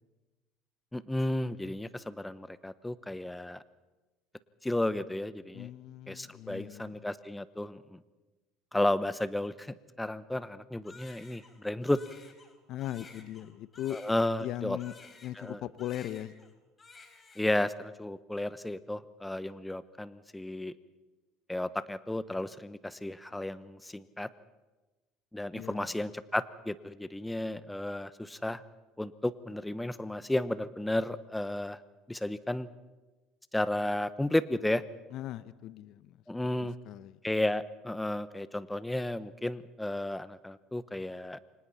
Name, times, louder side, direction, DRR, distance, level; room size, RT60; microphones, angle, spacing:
voice 1, 0.9-3.6 4.6-5.7 6.1-8.0 8.7-12.0 13.9-14.8 15.4-15.6 17.4-20.8 21.5-24.3 25.3-28.6 29.0-31.8 32.1-32.7 33.5-34.8 36.3-36.8 37.2-41.4, left 1 dB, 10° left, 15 dB, 1.2 m, -33 dB
voice 2, 5.5-7.0 12.7-14.0 14.4-14.9 15.2-16.3 25.5-25.9 35.1-36.2 36.6-37.2, left 13 dB, 60° left, 16 dB, 0.9 m, -39 dB
Crying sobbing, 10.8-15.5 15.8-16.5 16.8-17.7, left 4 dB, 30° left, 4.5 m, -54 dB
29.0 x 25.0 x 4.4 m, 1.1 s
hypercardioid pair, 70°, 0 cm